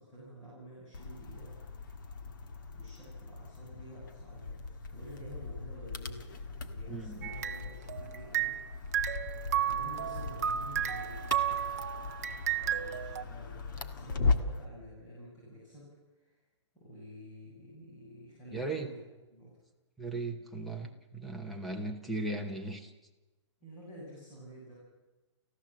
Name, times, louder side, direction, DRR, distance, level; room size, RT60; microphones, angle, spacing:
voice 1, 0.0-1.5 2.7-4.6 4.9-8.5 8.9-9.0 9.7-11.3 12.6-15.9 16.1-16.4 16.7-19.0 19.3-19.6 23.6-24.7, equal, 15° left, -7 dB, 7.4 m, -50 dB
sound 1, 0.9-14.7, left 4 dB, 40° left, 1.6 m, -38 dB
voice 2, 6.9-7.3 18.5-18.9 20.0-22.9, right 2 dB, ahead, 5 dB, 0.8 m, -37 dB
sound 2, 7.2-8.7 8.9-13.2, right 10 dB, 30° right, 0.7 m, -33 dB
29.5 x 15.5 x 7.5 m, 1.1 s
hypercardioid pair, 180°, 16 cm